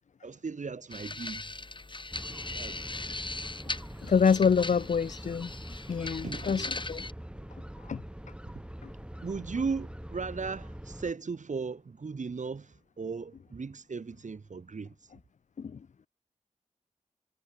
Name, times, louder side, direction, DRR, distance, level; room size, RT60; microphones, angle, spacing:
voice 1, 0.2-1.6 2.3-3.2 4.3-4.8 6.2-6.7 9.2-15.1, right 4 dB, 75° right, 5.4 m, -37 dB
sound 1, 0.9-7.1, left 3 dB, 40° left, 2.5 m, -39 dB
sound 2, 2.1-11.1, equal, 10° right, 4.6 m, -44 dB
voice 2, 4.1-5.5 5.9-7.0 7.9-8.0 15.6-15.7, left 6 dB, 75° left, 0.7 m, -26 dB
cardioid pair, 55°, 13 cm